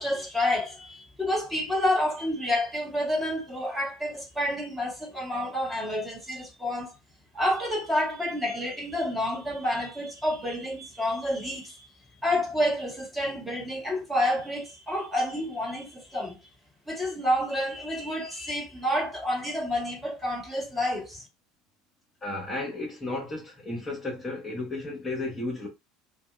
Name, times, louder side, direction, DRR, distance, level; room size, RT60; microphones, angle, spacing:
voice 1, 0.0-7.0 7.3-11.9 12.2-16.4 16.9-21.2, left 1 dB, 10° right, 1.7 m, -29 dB
voice 2, 22.2-25.7, left 2 dB, 20° left, 1.2 m, -33 dB
2.6 x 2.3 x 3.3 m
hypercardioid pair, 70°, 0 cm